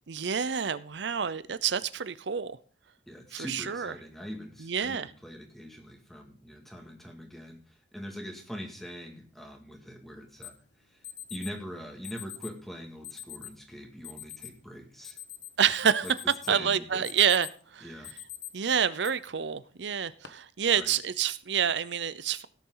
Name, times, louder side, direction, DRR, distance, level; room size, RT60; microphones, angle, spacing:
voice 1, 0.1-2.6 3.3-3.9 4.6-5.1 15.6-16.2 16.5-17.9 18.5-22.5, right 7 dB, 75° right, 16 dB, 0.7 m, -28 dB
voice 2, 3.1-10.5 10.8-11.0 11.3-15.2 16.0-16.1 16.5-17.0 17.8-18.1 20.7-20.9, equal, ahead, 1 dB, 2.1 m, -43 dB
Alarm, 10.4-10.5 11.0-11.5 12.0-12.5 13.0-13.5 14.0-14.5 14.9-15.7 16.0-16.6 16.9-17.6 18.0-18.5 19.0-19.1 19.9-20.3, left 12 dB, 85° left, 1.2 m, -42 dB
17.0 x 7.2 x 3.9 m, 0.42 s
head